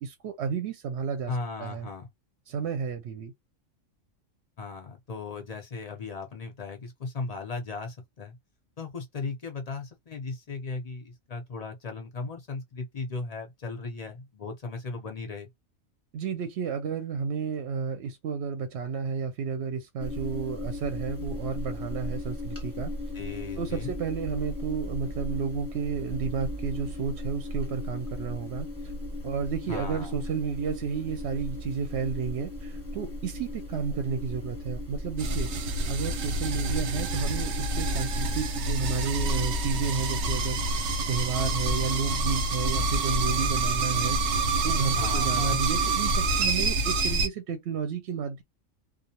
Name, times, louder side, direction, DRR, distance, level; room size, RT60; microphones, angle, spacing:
voice 1, 0.0-1.3 1.6-1.9 2.5-3.3 16.1-22.9 23.6-28.7 29.2-35.5 35.9-48.4, right 6 dB, 65° right, 0.8 m, -32 dB
voice 2, 1.3-2.1 4.6-8.4 8.8-15.5 23.1-23.9 29.7-30.2 44.9-45.6, left 4 dB, 50° left, 0.5 m, -37 dB
sound 1, 20.0-39.9, left 1 dB, 15° left, 0.7 m, -36 dB
sound 2, 35.2-47.3, right 2 dB, 90° right, 1.0 m, -27 dB
2.4 x 2.0 x 2.8 m
omnidirectional pair, 1.3 m